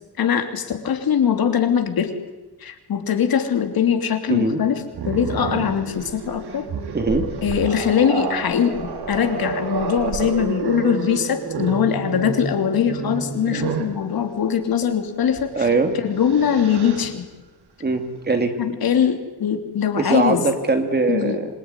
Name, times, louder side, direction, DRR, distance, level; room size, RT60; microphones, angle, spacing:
voice 1, 0.2-2.1 2.6-6.7 7.4-15.7 16.0-17.2 18.6-20.5 21.1-21.4, left 8 dB, 65° left, 6 dB, 3.0 m, -21 dB
voice 2, 4.3-4.6 6.9-7.3 15.5-15.9 17.8-18.5 20.0-21.5, right 3 dB, 25° right, 6 dB, 2.5 m, -21 dB
Growling, 4.9-14.0 15.3-15.5 15.9-17.1, right 5 dB, 85° right, 3.9 m, -29 dB
26.5 x 22.0 x 9.8 m, 1.1 s
wide cardioid pair, 175°, 38 cm